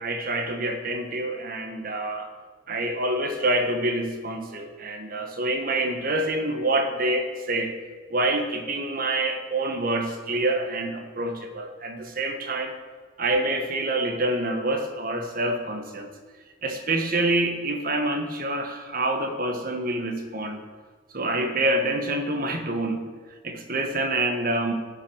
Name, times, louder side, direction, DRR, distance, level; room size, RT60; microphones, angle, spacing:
voice 1, 0.0-2.3 2.7-7.7 8.1-12.8 13.2-16.1 16.6-20.6 21.1-23.1 23.4-24.7, right 2 dB, 45° right, 5 dB, 1.4 m, -26 dB
16.5 x 6.2 x 6.4 m, 1.4 s
head